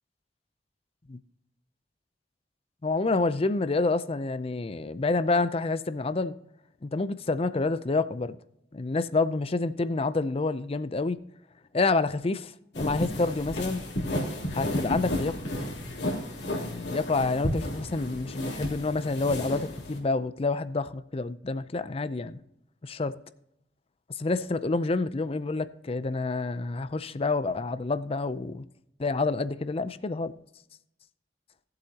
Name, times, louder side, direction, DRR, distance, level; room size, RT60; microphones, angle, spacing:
voice 1, 2.8-6.4 6.8-8.4 8.7-11.2 11.7-13.8 14.5-15.4 16.5-22.4 22.8-23.1 24.2-28.6 29.0-30.3, left 3 dB, 35° left, 0.5 m, -28 dB
sound 1, 12.7-20.0, left 1 dB, 75° left, 3.1 m, -32 dB
18.0 x 7.9 x 2.9 m
head